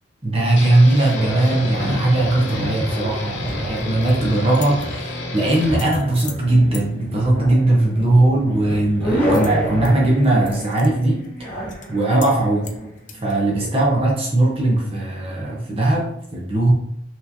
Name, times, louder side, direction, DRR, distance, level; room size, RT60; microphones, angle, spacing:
voice 1, 0.2-11.6 11.9-12.7 13.2-16.7, right 2 dB, 30° right, -3 dB, 0.8 m, -19 dB
sound 1, 0.6-5.8, left 2 dB, 75° left, 0.8 m, -31 dB
sound 2, 1.1-13.8, equal, 10° left, 1.5 m, -28 dB
sound 3, 3.8-4.1 4.5-4.9 5.6-6.4 6.7-6.9 9.3-9.9 10.2-10.9 11.2-11.3 11.7-11.9 12.2-12.3 12.6-13.3, left 8 dB, 45° left, 0.5 m, -39 dB
5.6 x 3.1 x 2.5 m, 0.74 s
head